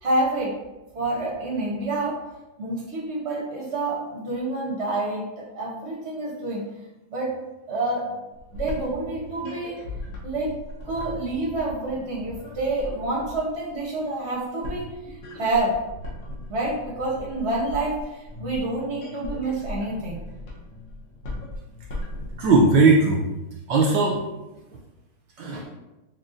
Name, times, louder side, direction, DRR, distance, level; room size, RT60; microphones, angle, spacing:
voice 1, 0.0-0.5 0.9-2.1 2.6-6.6 7.1-7.3 7.7-8.0 8.5-9.8 10.2-10.5 10.8-15.7 16.5-20.2, right 2 dB, 55° right, -4 dB, 0.7 m, -28 dB
sound 1, 8.3-22.7, left 2 dB, 85° left, 1.8 m, -38 dB
voice 2, 22.4-23.3 23.7-24.2 25.4-25.6, right 3 dB, 75° right, -2 dB, 1.0 m, -18 dB
6.3 x 2.2 x 2.5 m, 1.0 s
omnidirectional pair, 2.3 m